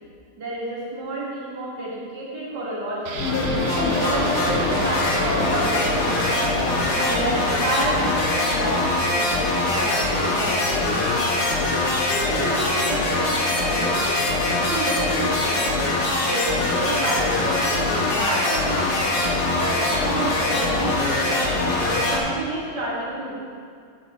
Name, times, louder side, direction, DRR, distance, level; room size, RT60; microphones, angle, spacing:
voice 1, 0.4-3.2 3.8-6.4 6.9-11.2 12.1-14.2 14.6-15.7 16.2-21.4 21.9-23.3, right 1 dB, 70° right, -7 dB, 2.6 m, -30 dB
sound 1, 3.1-12.7 13.0-13.1, right 3 dB, 90° right, 0.5 m, -37 dB
sound 2, 3.2-22.2, left 2 dB, 65° left, 1.7 m, -22 dB
8.4 x 6.1 x 4.3 m, 2.2 s
omnidirectional pair, 1.9 m